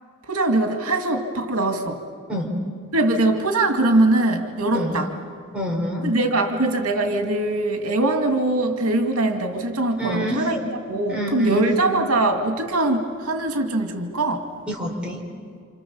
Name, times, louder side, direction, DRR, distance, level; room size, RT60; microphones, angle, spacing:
voice 1, 0.3-2.0 2.9-5.1 6.0-10.6 10.9-14.5, right 2 dB, 85° right, 4 dB, 2.4 m, -22 dB
voice 2, 5.5-6.0 10.0-10.5 11.1-11.7 14.7-15.2, equal, 5° right, -3 dB, 4.7 m, -27 dB
29.5 x 28.0 x 7.1 m, 2.1 s
head